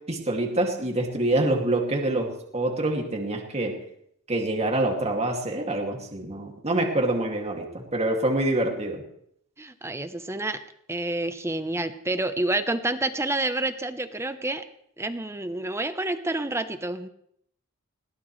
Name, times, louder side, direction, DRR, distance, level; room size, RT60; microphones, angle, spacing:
voice 1, 0.0-3.8 4.3-9.0, right 2 dB, 30° right, 1 dB, 2.4 m, -26 dB
voice 2, 9.6-10.6 10.9-14.6 15.0-17.1, right 2 dB, 10° right, 10 dB, 0.9 m, -28 dB
21.0 x 17.5 x 3.3 m, 0.70 s
head